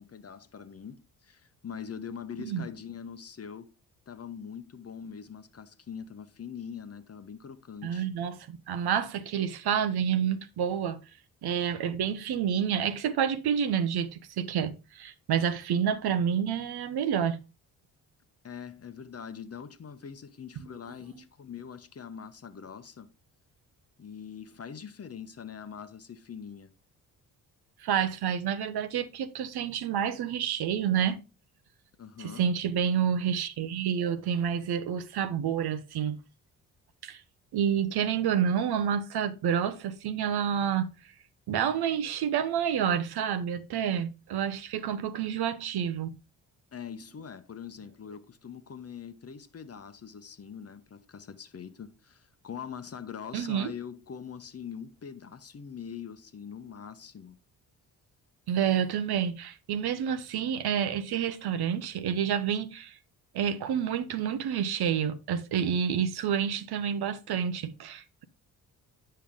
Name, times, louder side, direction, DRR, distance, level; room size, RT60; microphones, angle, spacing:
voice 1, 0.0-3.7 4.1-8.1 18.4-23.1 24.0-26.7 32.0-32.5 46.7-57.4, left 7 dB, 35° left, 0.9 m, -43 dB
voice 2, 7.8-11.0 11.4-17.4 27.8-31.2 32.2-36.2 37.0-37.2 37.5-40.9 41.5-46.1 53.3-53.7 58.5-63.0 63.3-68.2, right 8 dB, 60° right, 0.8 m, -29 dB
8.6 x 5.5 x 3.6 m
hypercardioid pair, 45°, 44 cm